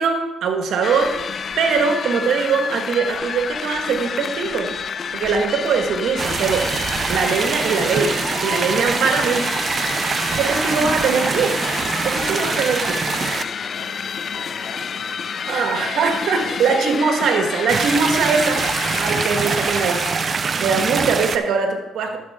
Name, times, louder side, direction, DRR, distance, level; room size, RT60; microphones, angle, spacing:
voice 1, 0.0-4.7 5.1-6.7 7.1-8.1 8.4-9.5 10.4-11.6 12.0-13.0 15.5-20.1 20.6-22.2, right 5 dB, 75° right, 4 dB, 1.5 m, -21 dB
sound 1, 0.8-20.4, left 6 dB, 50° left, 0.3 m, -29 dB
sound 2, 6.2-13.4 17.7-21.4, right 5 dB, 40° right, 0.5 m, -24 dB
voice 2, 8.1-9.2 12.1-16.8 20.8-21.0 22.0-22.2, left 3 dB, 70° left, 1 dB, 2.1 m, -41 dB
12.5 x 6.6 x 3.6 m, 1.0 s
cardioid pair, 90°, 0 cm